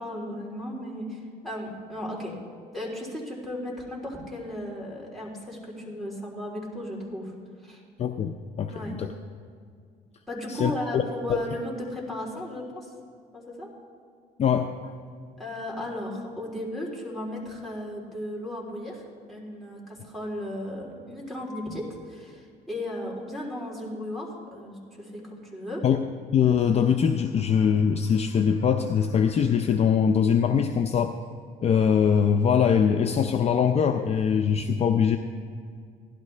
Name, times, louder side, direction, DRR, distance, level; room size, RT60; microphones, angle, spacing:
voice 1, 0.0-2.3 2.7-7.3 7.6-7.8 8.7-9.0 10.3-12.9 13.3-13.7 15.4-25.8, left 1 dB, ahead, -5 dB, 3.2 m, -35 dB
voice 2, 8.0-8.7 9.0-9.1 10.5-11.0 14.4-14.7 25.8-26.0 26.3-31.1 31.6-35.2, left 7 dB, 40° left, 6 dB, 0.5 m, -22 dB
16.0 x 11.5 x 3.3 m, 2.2 s
cardioid pair, 110°, 17 cm